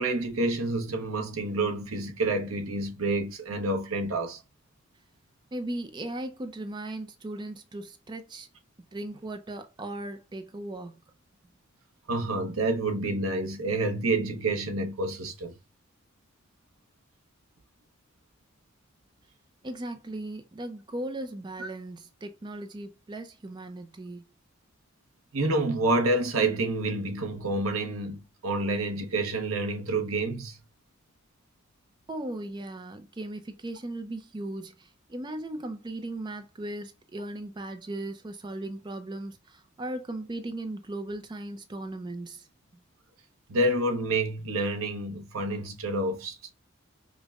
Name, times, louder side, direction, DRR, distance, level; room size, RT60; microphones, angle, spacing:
voice 1, 0.0-4.4 12.1-15.5 21.6-21.7 25.3-30.6 43.5-46.5, right 2 dB, 85° right, 0.8 m, -28 dB
voice 2, 5.5-8.5 8.9-10.9 19.6-24.2 32.1-42.5, right 1 dB, 20° right, 0.4 m, -37 dB
5.1 x 2.1 x 2.3 m
head